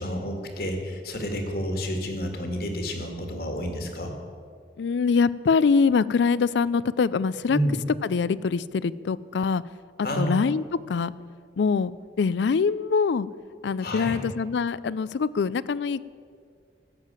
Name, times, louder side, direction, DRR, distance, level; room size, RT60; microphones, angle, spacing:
voice 1, 0.0-4.1 7.5-7.7 10.0-10.5 13.8-14.2, equal, 55° left, 4 dB, 2.0 m, -30 dB
voice 2, 4.8-7.6 8.0-9.6 10.2-11.1 11.6-13.3 13.6-16.0, left 5 dB, 75° left, 19 dB, 0.4 m, -24 dB
14.0 x 7.5 x 8.8 m, 2.1 s
head